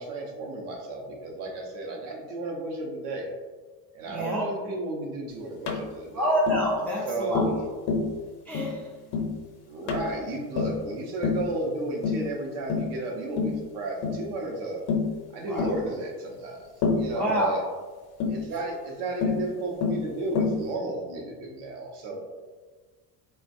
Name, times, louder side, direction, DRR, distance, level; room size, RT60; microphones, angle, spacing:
voice 1, 0.0-3.3 3.9-6.3 7.1-7.6 9.6-14.8 15.3-17.6 18.3-22.2, right 2 dB, 75° right, 0 dB, 0.8 m, -33 dB
voice 2, 4.1-4.4 6.1-7.4 8.5-9.3 15.4-15.7 17.1-17.5, equal, 5° left, -5 dB, 0.3 m, -27 dB
Tap, 5.7-5.8 6.5-6.7 7.3-7.6 7.9-8.1 8.5-8.7 9.1-9.3 9.9-10.1 10.6-10.8 11.2-11.5 12.0-12.3 12.7-12.9 13.4-13.6 14.0-14.2 14.9-15.1 15.6-15.8 16.8-17.1 18.2-18.4 19.2-19.4 19.8-20.0 20.4-20.6, left 5 dB, 65° left, 0.7 m, -26 dB
3.1 x 2.2 x 2.5 m, 1.4 s
cardioid pair, 125°, 42 cm